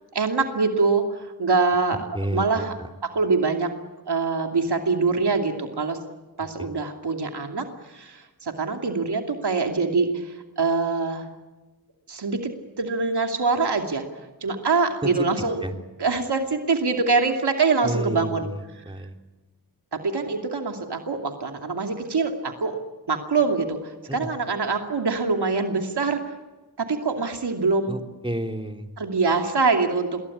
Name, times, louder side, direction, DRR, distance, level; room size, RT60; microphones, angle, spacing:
voice 1, 0.1-2.7 3.0-3.7 4.1-6.0 6.4-11.3 12.1-12.5 12.8-14.0 14.4-15.6 16.0-18.5 19.9-22.7 23.1-26.2 26.8-27.9 29.0-30.2, right 4 dB, 85° right, 4 dB, 2.7 m, -24 dB
voice 2, 2.1-2.6 15.0-15.1 15.6-15.7 17.8-19.2 24.1-24.3 27.9-28.9, right 1 dB, 15° right, 4 dB, 3.2 m, -30 dB
27.0 x 22.0 x 8.7 m, 1.2 s
wide cardioid pair, 60°, 39 cm